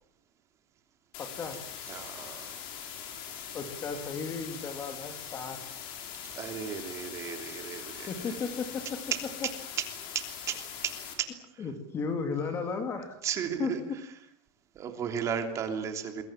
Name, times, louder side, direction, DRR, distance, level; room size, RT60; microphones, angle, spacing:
sound 1, 1.1-11.1, left 8 dB, 40° left, 5.6 m, -42 dB
voice 1, 1.2-1.6 3.5-5.6 8.1-8.8 11.6-13.2 13.6-13.7, left 5 dB, 20° left, 7 dB, 2.7 m, -34 dB
voice 2, 1.9-2.5 6.2-8.3 10.1-11.6 13.2-13.8 14.7-16.2, right 7 dB, 25° right, 6 dB, 3.1 m, -35 dB
27.5 x 22.5 x 7.5 m, 0.69 s
supercardioid pair, 175°, 13 cm